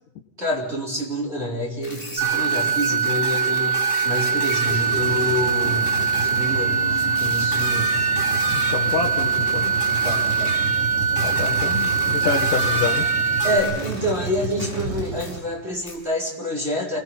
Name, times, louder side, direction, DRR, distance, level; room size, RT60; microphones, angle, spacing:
voice 1, 0.4-7.9 10.0-10.6 13.4-17.0, equal, 15° right, -3 dB, 4.0 m, -27 dB
sound 1, 1.8-14.9 15.2-15.4 15.9-16.0, left 1 dB, 15° left, 5.4 m, -33 dB
sound 2, 2.2-13.6, right 6 dB, 45° right, 3.4 m, -22 dB
Truck, 4.6-15.8, right 3 dB, 30° right, 5.3 m, -32 dB
voice 2, 8.5-9.7 11.2-13.1, left 7 dB, 80° left, 1 dB, 1.9 m, -27 dB
28.5 x 21.5 x 5.7 m, 0.83 s
omnidirectional pair, 5.9 m